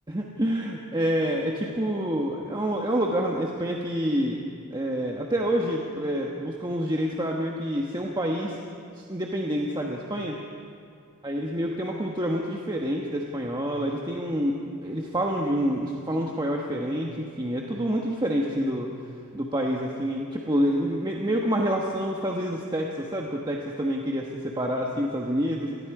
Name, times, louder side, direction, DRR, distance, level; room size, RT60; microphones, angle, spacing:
voice 1, 0.1-4.4 4.7-8.6 9.0-10.4 11.2-18.9 19.3-25.7, equal, 20° right, -1 dB, 1.3 m, -27 dB
27.0 x 19.5 x 4.9 m, 2.4 s
head